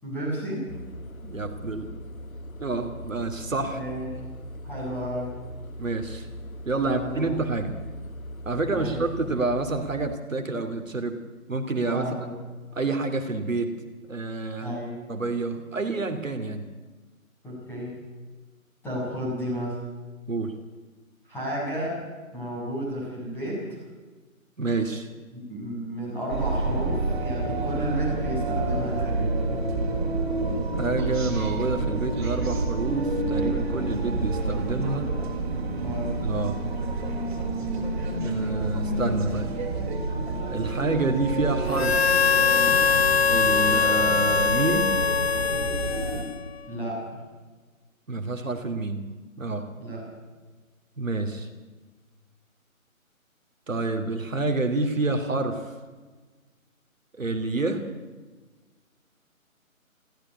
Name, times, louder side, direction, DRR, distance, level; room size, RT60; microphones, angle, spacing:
voice 1, 0.0-0.7 3.6-4.1 4.6-5.4 6.8-7.3 8.6-9.0 11.9-12.3 14.6-15.0 17.4-18.0 18.8-19.8 21.3-22.0 22.3-23.6 25.3-29.5 35.7-36.1 46.7-47.2 49.8-50.0, equal, 5° left, -5 dB, 7.4 m, -32 dB
sound 1, 0.7-10.2, equal, 75° left, 1.6 m, -39 dB
voice 2, 1.2-1.9 2.6-3.8 5.8-6.3 6.6-7.7 8.4-11.2 11.5-12.1 12.7-13.7 14.1-14.8 15.1-16.7 20.3-20.5 24.6-25.1 30.7-35.1 36.2-36.6 38.2-39.5 40.5-42.0 43.3-44.9 48.1-49.0 49.4-49.6 51.0-51.5 53.7-55.8 57.2-57.8, right 3 dB, 65° right, 6 dB, 2.9 m, -28 dB
sound 2, 26.3-46.2, right 2 dB, 35° right, 4.8 m, -28 dB
Harmonica, 41.7-46.6, left 6 dB, 50° left, 0.6 m, -22 dB
23.0 x 15.5 x 9.5 m, 1.3 s
figure-of-eight pair, 150°, 42 cm